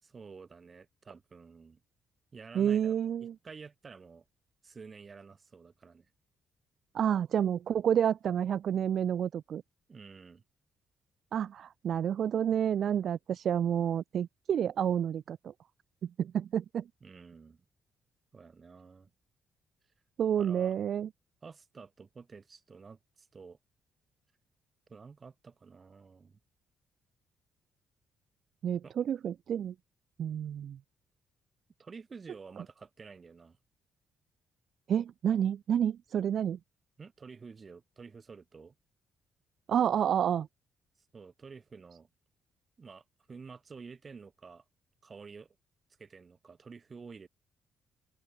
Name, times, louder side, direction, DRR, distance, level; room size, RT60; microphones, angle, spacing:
voice 1, 0.0-1.8 2.3-2.9 3.4-4.2 4.6-6.1 9.9-10.4 17.0-17.6 18.3-19.1 20.4-20.8 21.4-23.6 24.9-26.4 28.8-28.9 31.8-33.6 37.0-38.7 41.1-42.1 42.8-44.6 45.0-45.5 46.0-47.3, right 5 dB, 35° right, 7.7 m, -50 dB
voice 2, 2.5-3.3 6.9-9.6 11.3-15.5 16.0-16.8 20.2-21.1 28.6-29.7 30.2-30.8 34.9-36.6 39.7-40.5, right 9 dB, 60° right, 0.5 m, -29 dB
open air
cardioid pair, 90°, 0 cm